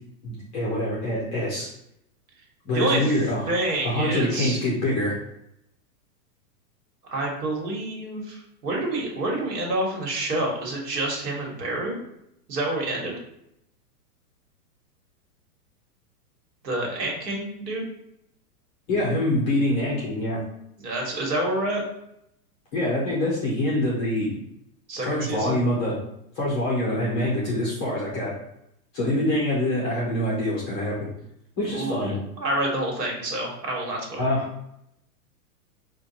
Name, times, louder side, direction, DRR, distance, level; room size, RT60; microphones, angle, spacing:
voice 1, 0.2-1.7 2.6-3.5 3.8-5.1 18.9-20.4 22.7-24.4 25.0-26.0 26.3-28.3 28.9-31.1 31.6-32.1 34.2-34.5, left 1 dB, 15° left, -5 dB, 0.3 m, -25 dB
voice 2, 2.7-3.1 3.5-4.6 7.1-12.0 12.5-13.1 16.6-17.8 20.8-21.8 24.9-25.6 31.7-34.3, right 1 dB, 90° right, -1 dB, 1.5 m, -28 dB
4.5 x 2.3 x 2.7 m, 0.79 s
hypercardioid pair, 135°, 47 cm